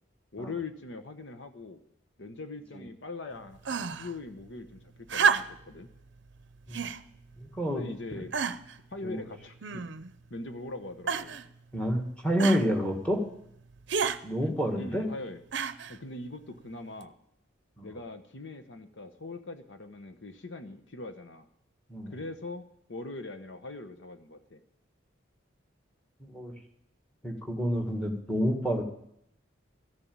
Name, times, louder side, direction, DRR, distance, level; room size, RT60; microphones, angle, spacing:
voice 1, 0.3-1.8 2.2-5.9 7.7-8.3 8.9-9.9 10.3-11.4 14.4-15.4 15.9-17.2 17.8-21.5 22.1-24.6, left 2 dB, 70° left, 8 dB, 1.0 m, -41 dB
sound 1, 3.6-4.1 5.1-5.7 6.7-7.0 7.7-7.8 8.3-8.8 9.6-10.1 11.1-11.5 12.4-12.7 13.9-14.2 15.5-16.0 17.0-17.1, right 6 dB, 65° right, 0.6 m, -29 dB
voice 2, 7.4-7.8 9.0-9.2 11.7-13.2 14.2-15.1 17.8-17.9 21.9-22.1 26.2-26.5 27.2-28.8, equal, 5° left, 3 dB, 1.8 m, -29 dB
14.0 x 7.0 x 8.8 m, 0.75 s
head